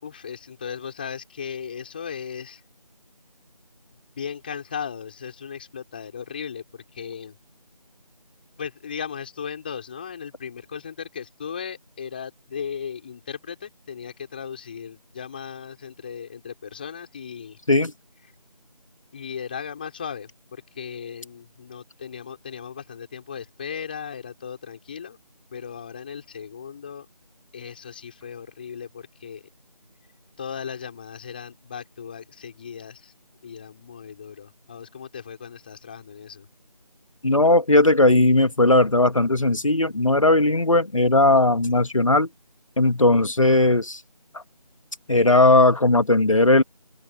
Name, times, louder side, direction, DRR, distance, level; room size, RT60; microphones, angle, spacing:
voice 1, 0.0-2.6 4.2-7.4 8.6-17.6 19.1-25.2 25.5-27.1 27.5-29.4 30.4-33.1 33.4-36.5, left 7 dB, 15° left, 5.1 m, -37 dB
voice 2, 37.2-42.3 42.8-44.0 45.1-46.6, left 2 dB, 50° left, 2.1 m, -18 dB
open air
figure-of-eight pair, 170°, 21 cm